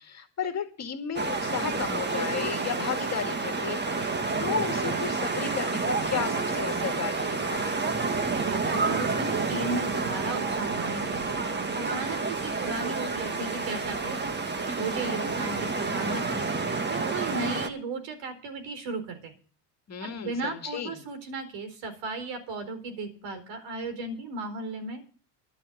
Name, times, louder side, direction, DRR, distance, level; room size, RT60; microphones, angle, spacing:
voice 1, 0.0-7.8 19.9-21.0, left 7 dB, 30° left, 6 dB, 2.2 m, -34 dB
sound 1, 1.2-17.7, right 3 dB, 20° right, 1.7 m, -29 dB
voice 2, 8.4-11.4 11.7-14.2 14.7-19.3 20.0-25.0, right 3 dB, 60° right, 8 dB, 4.5 m, -36 dB
11.5 x 7.3 x 9.4 m, 0.40 s
supercardioid pair, 95°, 49 cm